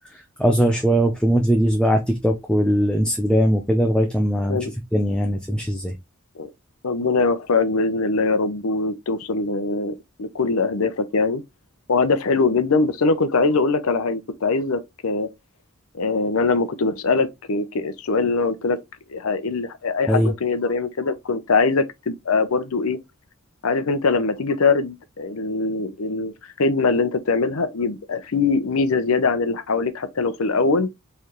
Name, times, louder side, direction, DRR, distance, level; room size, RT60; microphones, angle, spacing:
voice 1, 0.1-4.7 4.9-5.9 20.1-20.3, equal, 5° left, 0.5 m, -20 dB
voice 2, 6.8-11.4 11.9-15.3 16.0-18.8 19.1-23.0 23.6-30.9, left 4 dB, 75° left, 0.6 m, -22 dB
4.5 x 3.3 x 3.0 m
head